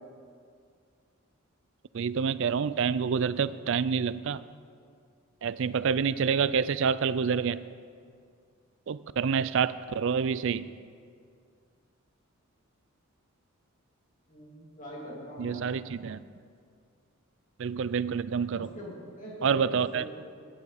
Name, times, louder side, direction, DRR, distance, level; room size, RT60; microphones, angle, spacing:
voice 1, 1.9-4.4 5.4-7.6 8.9-10.7 15.4-16.2 17.6-18.7 19.4-20.0, right 6 dB, 60° right, 16 dB, 0.4 m, -27 dB
voice 2, 14.3-15.6 18.5-20.1, left 1 dB, 35° left, -4 dB, 2.9 m, -42 dB
15.5 x 10.5 x 4.2 m, 2.2 s
head